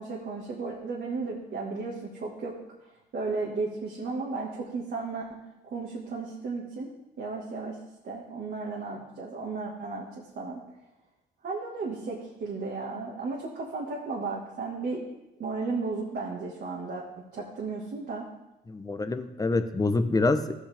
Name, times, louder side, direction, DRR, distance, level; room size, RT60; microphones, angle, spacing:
voice 1, 0.0-2.5 3.1-5.3 5.6-6.9 7.2-7.8 8.0-10.6 11.4-15.0 15.4-17.0 17.3-18.3, right 4 dB, 55° right, -2 dB, 1.7 m, -34 dB
voice 2, 18.7-20.5, left 3 dB, 20° left, 10 dB, 0.8 m, -26 dB
13.5 x 8.0 x 3.5 m, 0.96 s
cardioid pair, 90°, 20 cm